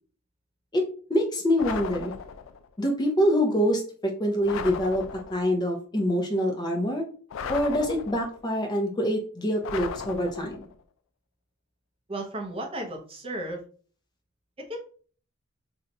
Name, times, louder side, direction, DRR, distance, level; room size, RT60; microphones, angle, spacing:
voice 1, 1.1-2.1 2.8-7.0 7.5-10.6, equal, 20° left, 2 dB, 0.6 m, -25 dB
sound 1, 1.6-2.7 4.4-5.6 7.3-8.5 9.6-10.8, left 6 dB, 70° left, 0.3 m, -37 dB
voice 2, 12.1-13.7 14.6-14.8, right 1 dB, 25° right, 2 dB, 0.6 m, -34 dB
2.7 x 2.3 x 4.0 m, 0.43 s
head